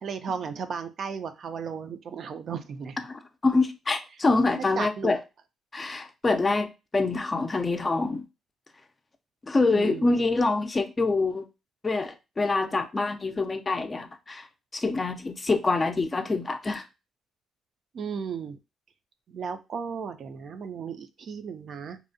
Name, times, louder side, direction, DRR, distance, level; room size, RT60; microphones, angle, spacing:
voice 1, 0.0-3.1 4.6-5.1 9.7-10.2 17.9-18.6 19.3-22.0, right 6 dB, 60° right, 0.3 m, -35 dB
voice 2, 3.4-5.2 5.7-8.2 9.5-11.5 11.8-14.5 14.7-16.8, left 3 dB, 25° left, 0.4 m, -25 dB
2.5 x 2.0 x 2.6 m
cardioid pair, 90°, 0 cm